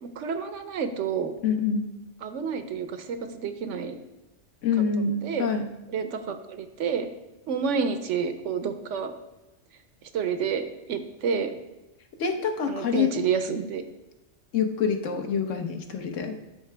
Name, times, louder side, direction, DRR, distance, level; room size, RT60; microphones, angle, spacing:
voice 1, 0.0-1.3 2.2-4.0 5.2-5.5 5.9-7.1 7.5-9.1 10.1-10.6 10.9-11.5 12.7-13.9, right 6 dB, 80° right, 8 dB, 1.1 m, -29 dB
voice 2, 1.4-1.9 4.6-5.7 12.2-13.1 14.5-16.4, left 6 dB, 90° left, 6 dB, 1.3 m, -26 dB
13.0 x 5.8 x 3.3 m, 0.99 s
omnidirectional pair, 1.2 m